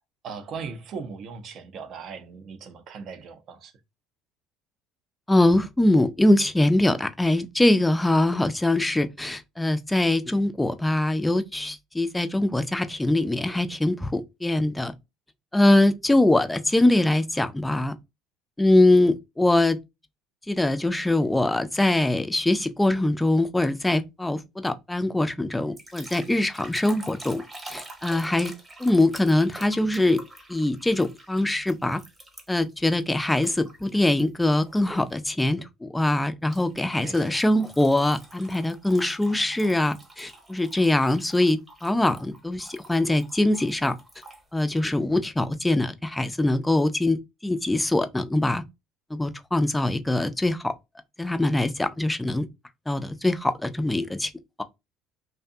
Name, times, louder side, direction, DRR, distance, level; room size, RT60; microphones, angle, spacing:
voice 1, 0.2-3.7 37.0-37.4, right 5 dB, 55° right, 0.6 m, -38 dB
voice 2, 5.3-14.9 15.5-17.9 18.6-19.8 20.5-27.4 27.7-28.5 28.8-30.2 30.5-32.0 32.5-43.9 44.5-47.2 47.4-48.6 49.1-50.7 51.2-52.5 52.9-54.3, left 1 dB, 10° left, 0.4 m, -23 dB
sound 1, 25.8-32.7 33.4-34.2 34.7-35.0 36.5-44.4, right 2 dB, 20° right, 1.0 m, -46 dB
2.6 x 2.2 x 2.6 m
supercardioid pair, 80°, 0 cm